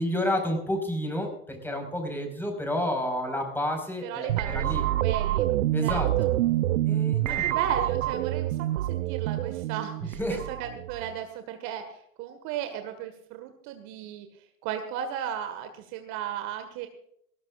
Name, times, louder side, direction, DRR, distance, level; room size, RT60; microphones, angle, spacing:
voice 1, 0.0-4.9 5.7-6.1 6.9-7.4 10.0-10.4, left 1 dB, 5° left, 3 dB, 5.0 m, -30 dB
voice 2, 4.0-5.5 5.8-6.3 7.3-14.3 14.6-16.9, right 9 dB, 45° right, 7 dB, 1.7 m, -35 dB
sound 1, 4.3-11.2, right 14 dB, 65° right, 0.7 m, -27 dB
19.0 x 18.0 x 2.5 m, 0.72 s
figure-of-eight pair, 90°, 40 cm